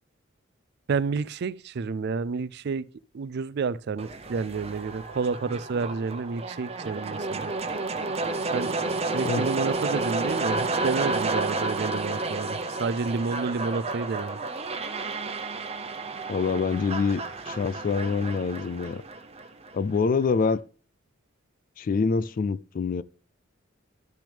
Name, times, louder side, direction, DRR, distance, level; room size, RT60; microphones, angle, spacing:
voice 1, 0.9-2.9 3.1-7.5 8.4-14.4, right 5 dB, 55° right, 0.4 m, -30 dB
sound 1, 4.0-20.0, right 3 dB, 30° right, 0.9 m, -31 dB
voice 2, 16.3-19.0 19.7-20.6 21.8-23.0, left 5 dB, 40° left, 0.3 m, -26 dB
11.5 x 6.1 x 3.5 m
head